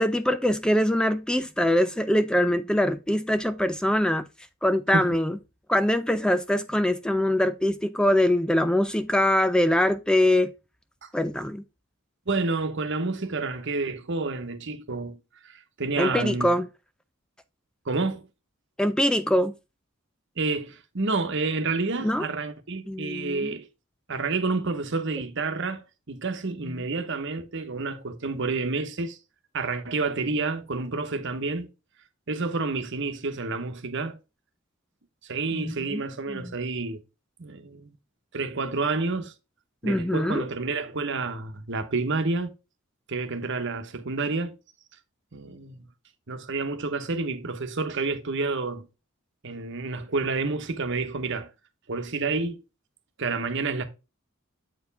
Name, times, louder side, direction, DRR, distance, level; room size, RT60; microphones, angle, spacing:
voice 1, 0.0-4.2 4.6-5.4 5.7-10.5 11.1-11.6 16.0-16.7 18.8-19.5 22.0-22.3 22.9-23.5 35.5-36.0 36.3-36.5 39.8-40.5, left 1 dB, 5° left, 0.3 m, -23 dB
voice 2, 12.3-16.5 17.9-18.3 20.4-23.7 24.1-29.2 29.5-31.7 32.3-34.2 35.2-37.0 37.4-37.9 38.3-39.3 39.8-42.5 43.1-44.6 45.3-45.9 46.3-48.9 49.4-51.5 51.9-52.6 53.2-53.8, right 3 dB, 60° right, 1.1 m, -29 dB
8.0 x 4.6 x 3.4 m
head